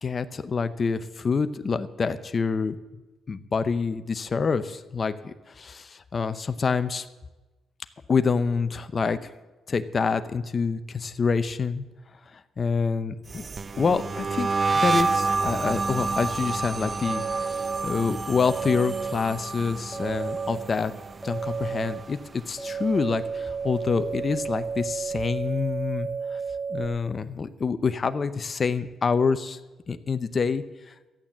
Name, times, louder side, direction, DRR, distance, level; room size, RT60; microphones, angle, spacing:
voice 1, 0.0-2.8 3.3-7.1 8.1-9.3 9.7-11.8 12.3-13.4 13.8-14.5 14.7-20.9 21.2-26.4 26.7-29.6 29.9-30.9, left 5 dB, 40° left, 11 dB, 0.7 m, -27 dB
sound 1, 13.3-22.4 22.7-23.2 23.5-25.0, right 4 dB, 35° right, 0.4 m, -29 dB
sound 2, 17.0-17.8 18.4-19.1 19.9-20.6 21.2-21.9 22.6-26.9, right 5 dB, 15° right, 1.6 m, -32 dB
13.5 x 8.9 x 7.3 m, 1.1 s
cardioid pair, 90°, 0 cm